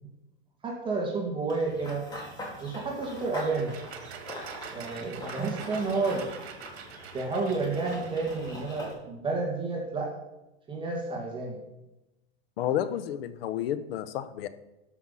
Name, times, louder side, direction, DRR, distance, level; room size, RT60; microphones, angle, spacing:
voice 1, 0.6-2.1 2.6-3.8 4.7-6.3 7.1-10.2 10.7-11.6, right 3 dB, 15° right, -1 dB, 1.9 m, -30 dB
Run / Bird vocalization bird call bird song, 1.5-8.9, left 1 dB, 10° left, 2.6 m, -42 dB
sound 1, 3.1-8.8, right 7 dB, 80° right, 1.5 m, -45 dB
voice 2, 12.6-14.5, left 11 dB, 65° left, 13 dB, 1.0 m, -31 dB
13.0 x 5.8 x 5.6 m, 0.96 s
supercardioid pair, 150°, 32 cm